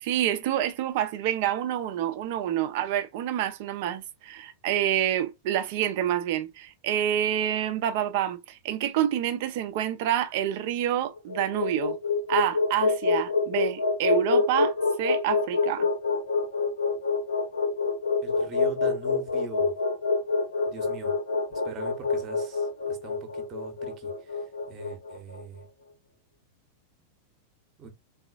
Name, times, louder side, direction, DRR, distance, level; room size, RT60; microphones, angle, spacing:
voice 1, 0.0-12.0 12.3-15.9, right 11 dB, 50° right, 0.5 m, -28 dB
sound 1, 11.2-25.4, left 4 dB, 70° left, 0.6 m, -26 dB
voice 2, 18.2-19.7 20.7-21.1 21.6-24.1 24.7-25.6 27.8-27.9, right 6 dB, 30° right, 0.9 m, -42 dB
3.8 x 2.4 x 2.3 m
figure-of-eight pair, 90°, 0 cm